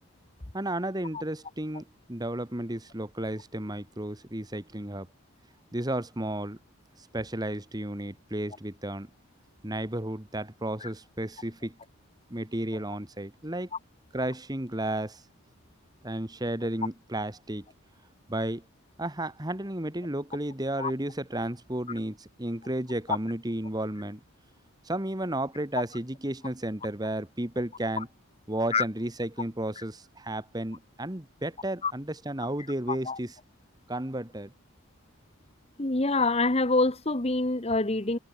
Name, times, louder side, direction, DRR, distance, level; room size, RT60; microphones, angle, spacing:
voice 1, 0.5-5.1 5.7-6.6 7.0-9.1 9.6-11.7 12.3-13.7 14.1-15.2 16.0-17.7 18.3-18.6 19.0-24.2 24.8-28.1 28.5-33.3 33.9-34.5, right 1 dB, 20° right, 1.6 m, -33 dB
voice 2, 32.9-33.2 35.8-38.2, left 3 dB, 30° left, 1.2 m, -26 dB
head